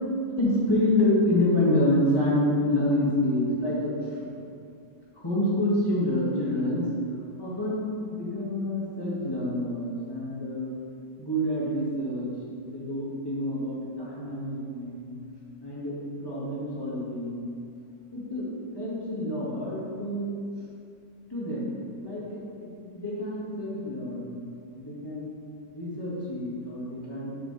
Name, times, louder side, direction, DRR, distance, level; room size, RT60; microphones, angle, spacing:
voice 1, 0.4-4.2 5.1-6.9 7.4-10.7 11.2-12.3 12.6-15.1 15.6-17.5 18.1-18.5 18.7-20.3 21.3-24.4 24.8-25.3 25.7-27.4, left 1 dB, 15° left, -8 dB, 2.0 m, -28 dB
9.0 x 7.1 x 3.4 m, 2.4 s
omnidirectional pair, 1.7 m